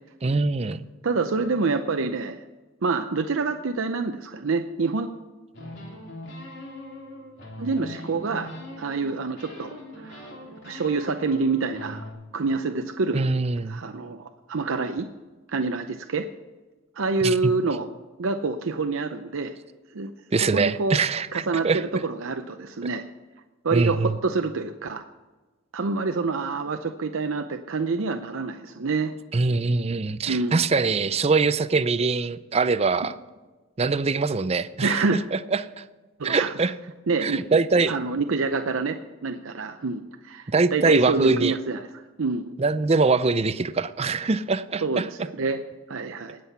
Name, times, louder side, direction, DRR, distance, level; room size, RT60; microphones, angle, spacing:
voice 1, 0.2-0.8 13.1-13.8 17.2-17.5 20.3-21.8 23.7-24.2 29.3-33.2 33.8-35.8 36.2-36.7 37.2-37.9 40.5-41.5 42.6-45.1, right 4 dB, 30° right, 14 dB, 0.5 m, -23 dB
voice 2, 1.0-2.4 2.8-5.1 7.6-8.5 8.8-10.2 10.6-12.1 12.3-13.3 13.7-15.1 15.5-16.3 17.0-17.9 18.2-19.5 19.9-20.1 20.5-21.0 21.3-23.0 23.6-25.0 25.7-29.1 30.3-30.6 34.8-35.2 36.2-36.5 37.1-37.4 37.9-41.8 42.2-42.5 44.8-45.6 45.9-46.4, right 4 dB, 90° right, 7 dB, 0.7 m, -27 dB
sound 1, 5.5-9.1 9.4-12.1, left 1 dB, 60° left, 3.2 m, -41 dB
19.0 x 7.7 x 5.7 m, 1.2 s
head